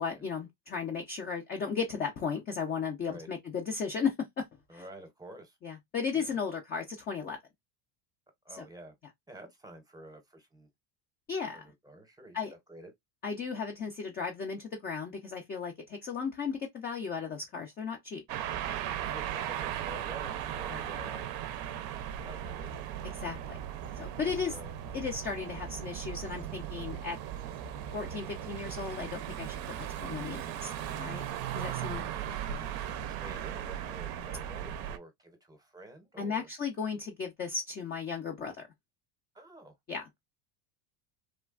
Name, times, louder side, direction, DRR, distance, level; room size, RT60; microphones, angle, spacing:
voice 1, 0.0-4.4 4.7-4.8 5.6-7.4 8.6-8.7 11.3-11.7 12.3-12.5 13.2-18.2 20.7-20.8 23.2-23.6 24.0-24.6 24.9-27.2 27.9-29.6 30.0-31.3 31.5-32.0 36.2-38.6 39.9-40.1, left 6 dB, 25° left, 0.3 m, -35 dB
voice 2, 4.7-5.6 6.1-6.4 8.4-9.0 9.3-10.7 11.5-12.9 18.9-21.3 22.2-23.3 24.2-24.7 27.4-27.6 31.9-36.5 39.3-39.7, right 1 dB, 10° right, 0.7 m, -50 dB
sound 1, 18.3-35.0, right 10 dB, 50° right, 0.5 m, -37 dB
3.2 x 2.2 x 2.3 m
supercardioid pair, 130°, 48 cm